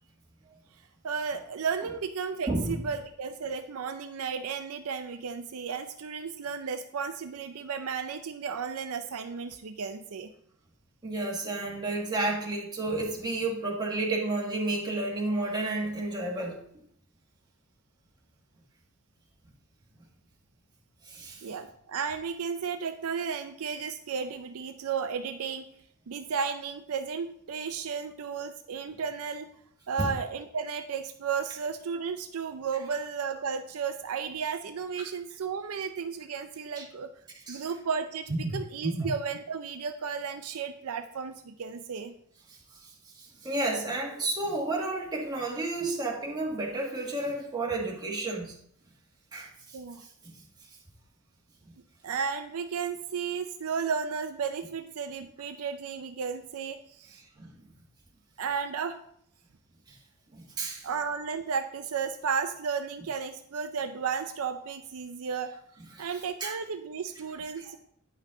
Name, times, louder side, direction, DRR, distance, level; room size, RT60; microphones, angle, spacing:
voice 1, 1.0-10.3 21.4-25.7 26.1-29.5 29.9-37.1 37.5-42.1 49.7-50.0 52.0-57.2 58.4-59.0 60.8-65.5 66.0-67.8, right 6 dB, 70° right, 7 dB, 0.5 m, -33 dB
voice 2, 2.5-2.8 11.0-16.6 21.0-21.4 30.0-30.1 35.0-35.1 36.8-36.9 37.5-37.7 38.3-38.5 38.8-39.1 42.8-48.5 49.3-49.8 57.4-57.5 60.3-60.9 66.0-66.1 66.4-66.5, right 2 dB, 20° right, -3 dB, 1.7 m, -31 dB
9.5 x 5.5 x 3.7 m, 0.68 s
head